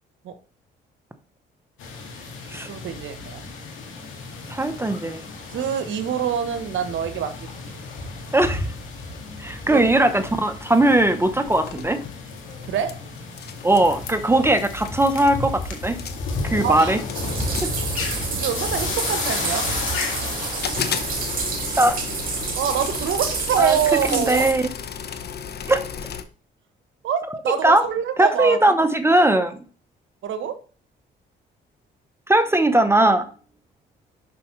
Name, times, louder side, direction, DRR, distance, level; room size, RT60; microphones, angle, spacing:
sound 1, 1.8-21.5, left 3 dB, 85° left, 2.0 m, -32 dB
voice 1, 2.7-3.4 5.5-7.8 9.6-9.9 12.7-13.0 16.6-16.9 18.3-19.7 22.6-24.5 27.0-27.2 27.4-28.6 30.2-30.6, right 8 dB, 75° right, 9 dB, 1.0 m, -25 dB
voice 2, 4.5-5.2 8.3-8.7 9.4-12.0 13.6-16.0 16.4-17.0 17.6-17.7 21.8-22.0 23.6-23.8 24.1-24.6 25.7-25.8 27.6-27.8 28.2-29.6 32.3-33.3, right 1 dB, 10° right, 8 dB, 0.8 m, -19 dB
sound 2, 11.5-12.9 13.2-13.9 14.6-14.7 14.9-15.4 15.8-16.4 16.8-18.6 19.1-20.2 20.6-26.2, left 7 dB, 55° left, 0.8 m, -34 dB
sound 3, 17.1-24.5, right 5 dB, 45° right, 2.2 m, -29 dB
6.9 x 5.8 x 3.1 m, 0.39 s
cardioid pair, 90°, 20 cm